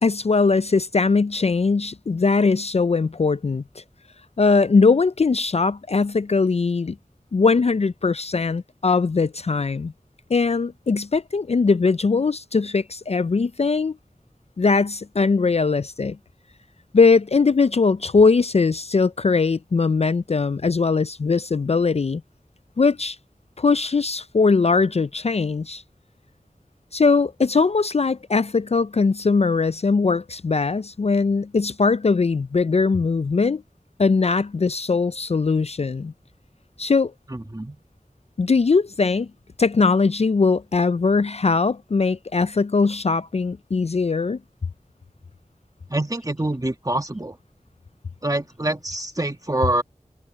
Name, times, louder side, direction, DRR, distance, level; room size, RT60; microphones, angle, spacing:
voice 1, 0.0-3.6 4.4-7.0 7.3-9.9 10.3-14.0 14.6-16.2 16.9-22.2 22.8-23.2 23.6-25.8 26.9-33.6 34.0-36.1 36.8-37.1 38.4-39.3 39.6-44.4, left 4 dB, 50° left, 0.4 m, -20 dB
voice 2, 37.3-37.8 45.9-47.4 48.2-49.8, right 1 dB, 25° right, 1.9 m, -25 dB
wide cardioid pair, 45°, 14 cm